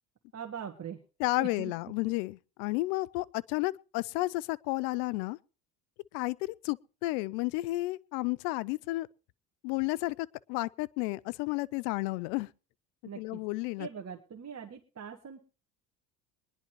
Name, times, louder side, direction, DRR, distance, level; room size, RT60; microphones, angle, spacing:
voice 1, 0.3-1.0 1.4-1.9 13.0-13.4 13.8-15.4, right 7 dB, 35° right, 1.5 m, -42 dB
voice 2, 1.2-5.4 6.1-9.1 9.6-12.5 13.2-13.9, left 20 dB, 85° left, 0.6 m, -32 dB
23.0 x 10.5 x 3.0 m
supercardioid pair, 85°, 45 cm